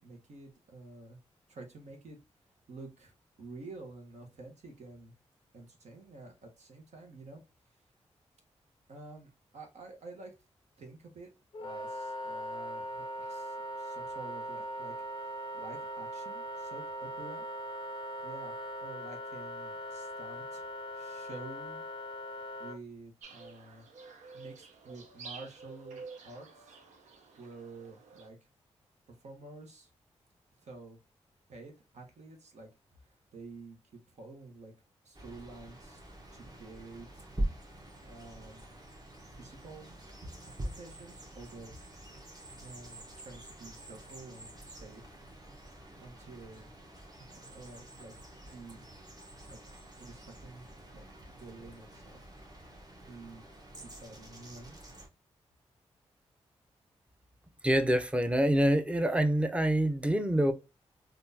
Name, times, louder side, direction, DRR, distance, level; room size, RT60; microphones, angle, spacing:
voice 1, 0.0-1.2 1.5-2.2 2.7-5.1 5.5-7.4 8.9-10.3 10.8-11.3 11.6-17.4 18.2-21.8 22.6-23.8 24.3-26.8 27.4-28.5 29.1-29.9 30.6-31.0 31.5-32.7 33.0-34.7 35.0-36.0 36.3-37.3 38.0-38.8 39.3-40.0 40.4-41.8 42.6-45.2 46.0-46.7 47.2-48.1 48.5-48.9 49.5-49.6 50.0-50.6 50.9-52.2 53.0-53.4 53.8-54.8, right 3 dB, 70° right, 1.0 m, -50 dB
Wind instrument woodwind instrument, 11.5-22.8, equal, 45° left, 0.4 m, -40 dB
sound 1, 23.2-28.3, right 4 dB, 90° right, 0.6 m, -50 dB
sound 2, 35.1-55.1, right 1 dB, 30° right, 1.1 m, -45 dB
voice 2, 57.6-60.5, right 1 dB, 10° right, 0.6 m, -26 dB
3.6 x 2.4 x 2.6 m
cardioid pair, 50°, 12 cm